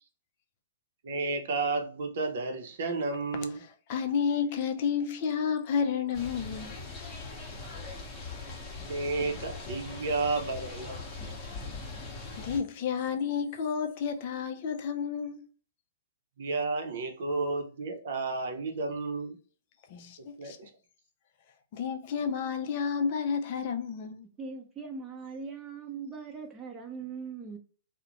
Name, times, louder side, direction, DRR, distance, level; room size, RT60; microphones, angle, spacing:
voice 1, 1.0-3.6 8.9-11.0 16.4-19.4 20.4-20.7, right 3 dB, 65° right, 0.6 m, -32 dB
voice 2, 3.9-6.8 12.4-15.5 19.9-20.6 21.7-24.3, left 6 dB, 50° left, 0.4 m, -31 dB
sound 1, 6.1-12.6, left 3 dB, 25° left, 0.8 m, -41 dB
voice 3, 24.4-27.6, right 5 dB, 15° right, 0.7 m, -40 dB
2.4 x 2.1 x 2.8 m
hypercardioid pair, 140°, 0 cm